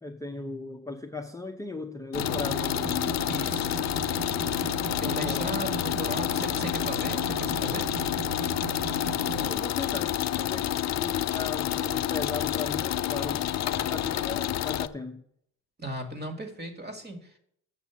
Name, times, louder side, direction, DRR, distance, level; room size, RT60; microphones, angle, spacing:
voice 1, 0.0-3.3 5.0-5.7 9.2-15.2, left 3 dB, 10° left, 2 dB, 0.7 m, -37 dB
sound 1, 2.1-14.9, left 12 dB, 50° left, 0.4 m, -29 dB
sound 2, 2.2-9.5, right 7 dB, 85° right, 0.9 m, -37 dB
voice 2, 3.2-3.8 5.0-7.9 15.8-17.4, right 1 dB, 25° right, 6 dB, 1.9 m, -37 dB
sound 3, 8.7-9.6 12.6-13.4, right 3 dB, 65° right, 2.7 m, -56 dB
7.5 x 6.0 x 7.1 m, 0.67 s
cardioid pair, 110°, 36 cm